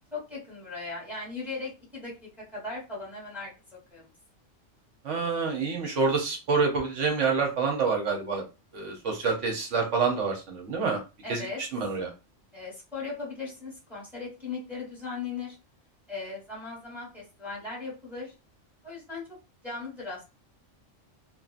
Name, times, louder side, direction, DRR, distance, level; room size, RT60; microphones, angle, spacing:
voice 1, 0.1-2.1 2.5-3.5 3.9-4.1 11.2-11.6 12.5-15.6 16.1-18.3 18.8-19.2 19.6-20.2, left 4 dB, ahead, -5 dB, 1.3 m, -38 dB
voice 2, 5.0-8.4 8.7-11.0 11.3-11.5 11.7-12.1, right 4 dB, 75° right, 1 dB, 1.1 m, -27 dB
2.7 x 2.3 x 2.5 m, 0.29 s
omnidirectional pair, 1.3 m